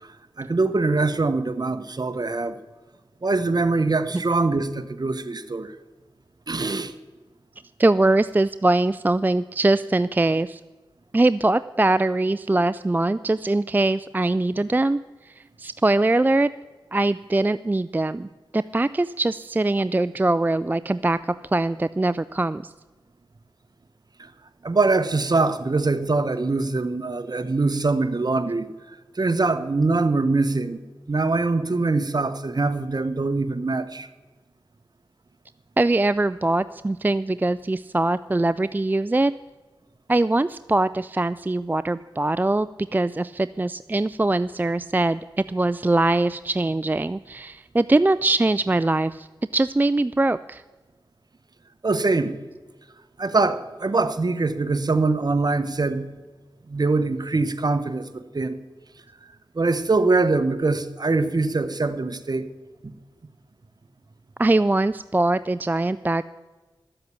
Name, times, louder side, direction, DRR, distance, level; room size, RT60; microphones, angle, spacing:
voice 1, 0.4-2.6 3.2-5.7 6.5-6.9 24.2-24.3 24.6-30.8 31.1-34.1 51.8-52.4 53.2-56.1 56.7-58.6 59.5-62.5, right 3 dB, 50° right, 11 dB, 1.1 m, -23 dB
voice 2, 7.8-10.6 11.1-15.0 15.2-16.5 16.9-18.3 18.5-22.7 35.8-39.3 40.1-49.3 49.5-50.6 64.4-66.2, right 2 dB, 20° right, 15 dB, 0.3 m, -22 dB
12.5 x 7.9 x 8.4 m, 1.3 s
cardioid pair, 45°, 9 cm